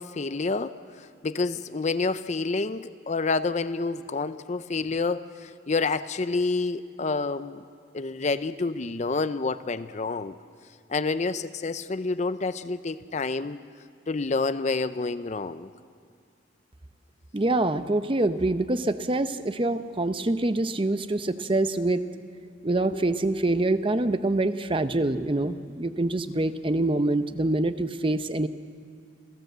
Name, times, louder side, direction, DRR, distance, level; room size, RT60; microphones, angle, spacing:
voice 1, 0.0-7.6 7.9-10.4 10.9-13.6 14.1-15.7, left 3 dB, 35° left, 0.5 m, -28 dB
voice 2, 17.3-22.0 22.6-28.5, right 2 dB, 25° right, 0.7 m, -25 dB
28.0 x 15.5 x 8.0 m
head